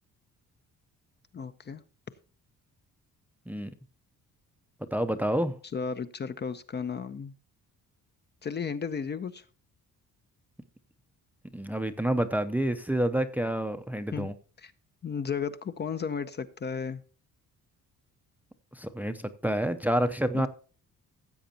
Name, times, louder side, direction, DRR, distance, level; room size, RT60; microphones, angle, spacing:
voice 1, 1.3-1.8 5.7-7.3 8.4-9.4 14.1-14.3 14.6-14.7 15.0-17.0 20.3-20.5, left 6 dB, 30° left, 12 dB, 0.6 m, -34 dB
voice 2, 4.9-5.6 11.5-14.3 18.7-20.5, right 1 dB, 5° right, 10 dB, 0.5 m, -28 dB
15.5 x 7.9 x 2.8 m, 0.38 s
cardioid pair, 155°, 33 cm